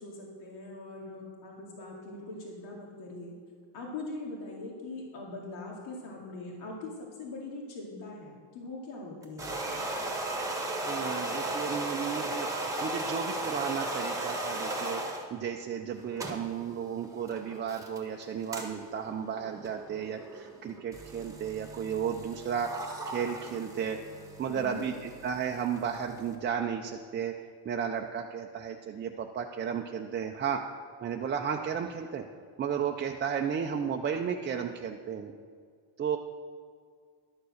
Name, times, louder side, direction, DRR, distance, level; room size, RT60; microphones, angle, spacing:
voice 1, 0.0-3.4 3.7-9.5 24.5-24.8, left 2 dB, 75° left, -2 dB, 2.4 m, -41 dB
sound 1, 9.2-15.3 15.9-26.3, right 2 dB, 5° right, 1.3 m, -36 dB
voice 2, 10.8-12.5 12.8-22.7 23.1-24.0 24.4-27.3 27.6-30.6 31.0-32.3 32.6-35.3 36.0-36.2, right 7 dB, 25° right, 2 dB, 0.4 m, -33 dB
12.0 x 7.0 x 6.3 m, 2.1 s
cardioid pair, 145°, 47 cm